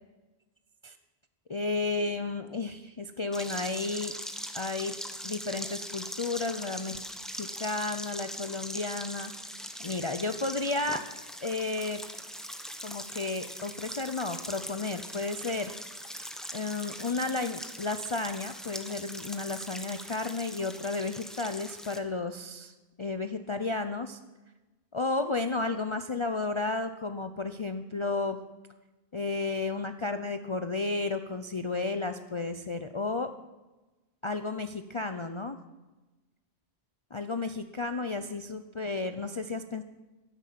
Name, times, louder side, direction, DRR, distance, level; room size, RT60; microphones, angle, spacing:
voice 1, 1.5-4.1 4.5-4.9 5.2-7.0 7.3-9.3 9.8-11.1 11.4-12.0 12.8-15.7 16.5-24.2 24.9-28.4 29.1-33.3 34.2-35.6 37.1-39.8, left 3 dB, 35° left, 8 dB, 0.6 m, -32 dB
sound 1, 3.3-22.0, equal, ahead, 1.0 m, -41 dB
12.5 x 10.5 x 7.6 m, 1.1 s
omnidirectional pair, 1.1 m